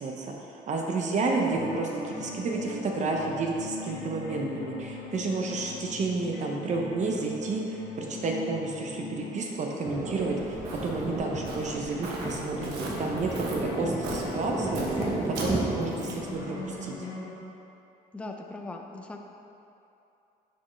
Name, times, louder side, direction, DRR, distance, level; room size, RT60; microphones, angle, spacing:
voice 1, 0.0-10.6 10.8-14.9 15.3-17.0, right 3 dB, 45° right, 0 dB, 0.7 m, -31 dB
sound 1, 1.5-17.4, left 2 dB, 75° left, 1.1 m, -41 dB
Thunder, 9.8-16.9, right 2 dB, 15° right, 0.8 m, -33 dB
Walk footsteps, 10.1-16.3, right 2 dB, 85° right, 1.0 m, -41 dB
voice 2, 18.1-19.2, left 2 dB, 5° left, 2 dB, 0.4 m, -39 dB
9.2 x 4.4 x 3.2 m, 2.8 s
cardioid pair, 110°, 17 cm